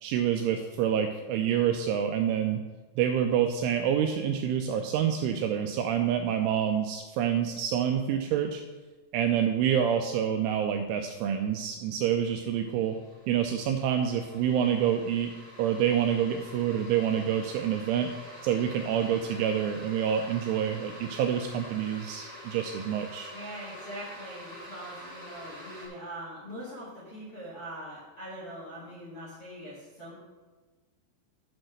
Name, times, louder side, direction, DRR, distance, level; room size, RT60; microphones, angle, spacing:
voice 1, 0.0-2.6 3.0-8.6 9.1-13.0 13.3-15.3 15.6-18.1 18.4-23.3, right 9 dB, 85° right, 4 dB, 2.8 m, -27 dB
sound 1, 11.7-11.8 12.2-25.9, equal, 15° right, 1.1 m, -47 dB
voice 2, 23.3-30.1, right 1 dB, 45° left, -10 dB, 1.9 m, -42 dB
9.5 x 4.5 x 6.3 m, 1.3 s
omnidirectional pair, 6.0 m